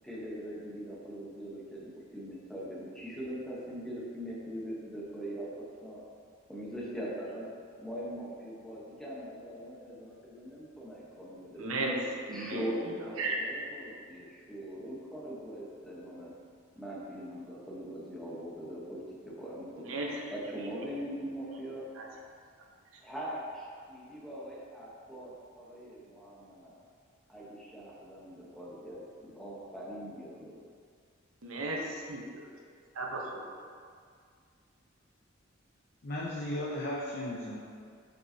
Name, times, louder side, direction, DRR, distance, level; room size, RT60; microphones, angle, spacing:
voice 1, 0.0-1.8 2.1-6.0 6.5-7.5 7.8-11.9 12.3-16.3 16.8-19.9 20.3-21.9 23.0-26.7 27.3-30.6, equal, ahead, -6 dB, 1.1 m, -41 dB
voice 2, 11.6-12.6 13.2-13.4 19.9-20.1 22.0-22.1 31.4-32.5 32.9-33.4, right 2 dB, 85° right, -1 dB, 1.0 m, -34 dB
voice 3, 36.0-37.6, left 1 dB, 50° left, -4 dB, 0.7 m, -35 dB
7.5 x 5.4 x 2.8 m, 2.1 s
head